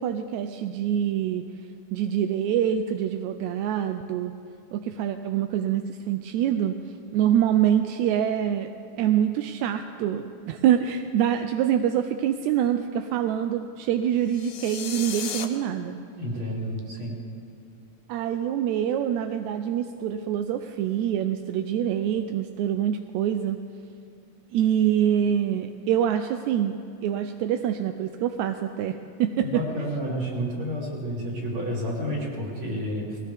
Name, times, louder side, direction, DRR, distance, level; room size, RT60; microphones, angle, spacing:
voice 1, 0.0-1.4 1.9-4.3 4.7-6.8 7.1-8.7 9.0-16.0 18.1-23.6 24.5-29.6, right 10 dB, 80° right, 7 dB, 1.7 m, -25 dB
sound 1, 14.3-15.5, left 8 dB, 65° left, 1.6 m, -34 dB
voice 2, 16.2-17.2 29.4-33.2, equal, 40° right, -4 dB, 3.9 m, -30 dB
20.0 x 18.0 x 3.5 m, 2.6 s
omnidirectional pair, 3.6 m